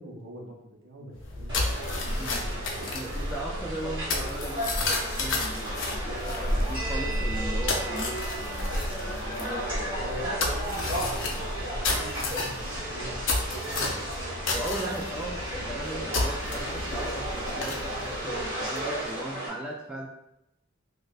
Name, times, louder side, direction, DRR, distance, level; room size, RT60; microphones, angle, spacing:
voice 1, 0.0-1.6 9.9-13.2 13.5-14.0, right 1 dB, 75° right, -1 dB, 0.7 m, -43 dB
sound 1, 1.2-19.1, left 2 dB, 65° left, 0.6 m, -32 dB
sound 2, 1.5-19.5, right 1 dB, 25° right, 1.3 m, -34 dB
voice 2, 2.9-10.0 14.5-20.1, right 1 dB, 5° right, -3 dB, 0.3 m, -38 dB
4.4 x 2.3 x 2.4 m, 0.85 s
head